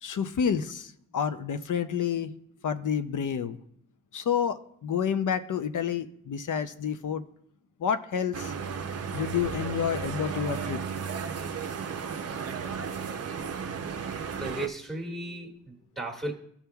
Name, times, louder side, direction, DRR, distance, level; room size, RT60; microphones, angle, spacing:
voice 1, 0.0-2.3 2.6-3.6 4.1-7.2 7.8-8.5 9.1-10.8, left 7 dB, 70° left, 10 dB, 0.5 m, -29 dB
sound 1, 8.3-14.7, right 6 dB, 50° right, 0.5 m, -34 dB
voice 2, 14.3-16.3, right 2 dB, ahead, -1 dB, 1.4 m, -35 dB
14.5 x 5.7 x 2.3 m, 0.69 s
wide cardioid pair, 125°, 32 cm